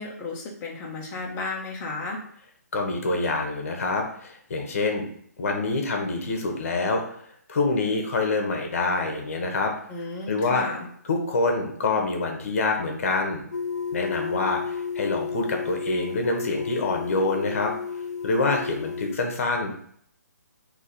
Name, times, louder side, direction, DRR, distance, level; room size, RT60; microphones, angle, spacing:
voice 1, 0.0-2.2 9.9-10.9, left 3 dB, 15° left, -2 dB, 0.9 m, -33 dB
voice 2, 2.7-5.0 5.4-7.2 7.5-9.7 10.3-10.6 11.1-13.4 13.9-17.7 18.2-19.7, left 3 dB, 50° left, 2 dB, 1.1 m, -26 dB
sound 1, 13.5-19.2, left 6 dB, 75° left, 0.4 m, -32 dB
4.0 x 2.9 x 4.0 m, 0.63 s
figure-of-eight pair, 145°, 9 cm